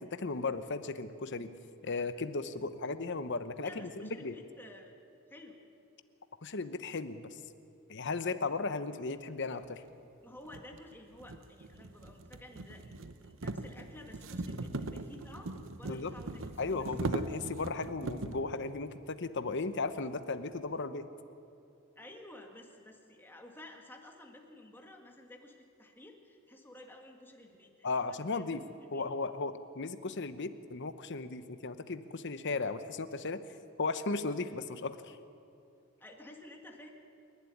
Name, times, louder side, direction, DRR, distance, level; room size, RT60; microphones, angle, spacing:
voice 1, 0.0-1.5 1.8-3.9 4.2-4.3 6.4-7.3 7.9-9.8 15.9-16.1 16.6-21.1 27.8-28.6 28.9-33.4 33.8-35.2, left 3 dB, 55° left, 11 dB, 1.0 m, -36 dB
voice 2, 3.6-4.9 5.3-5.6 10.2-16.9 22.0-28.5 28.8-29.0 36.0-36.9, left 1 dB, 10° left, 2 dB, 2.1 m, -52 dB
sound 1, 9.6-9.7 10.5-18.5, right 2 dB, 65° right, 1.0 m, -40 dB
27.5 x 11.5 x 10.0 m, 2.6 s
head